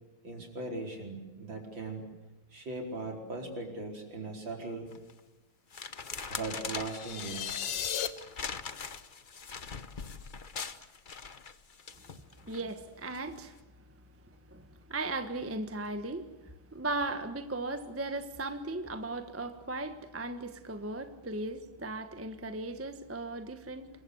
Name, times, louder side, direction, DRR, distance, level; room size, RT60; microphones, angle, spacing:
voice 1, 0.2-2.1 2.5-4.9 6.3-7.6, right 2 dB, 60° right, 2 dB, 5.3 m, -39 dB
sound 1, 4.9-5.2 5.7-12.6 13.1-13.4, left 5 dB, 40° left, 0.7 m, -42 dB
sound 2, 6.9-8.1, left 9 dB, 60° left, 1.7 m, -34 dB
voice 2, 12.4-23.9, right 2 dB, 10° right, 8 dB, 1.0 m, -37 dB
27.0 x 23.5 x 8.0 m, 1.1 s
omnidirectional pair, 2.4 m